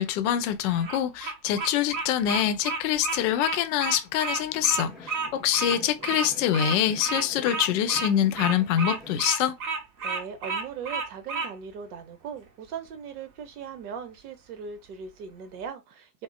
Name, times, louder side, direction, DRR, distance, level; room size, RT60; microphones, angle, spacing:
voice 1, 0.0-9.6, left 10 dB, 50° left, 0.7 m, -25 dB
Bird vocalization bird call bird song, 0.7-11.5, right 4 dB, 35° right, 1.0 m, -31 dB
sound 1, 4.3-9.5, left 2 dB, ahead, 1.2 m, -47 dB
voice 2, 10.0-16.2, right 6 dB, 65° right, 1.0 m, -39 dB
3.5 x 2.0 x 2.5 m
hypercardioid pair, 115°, 49 cm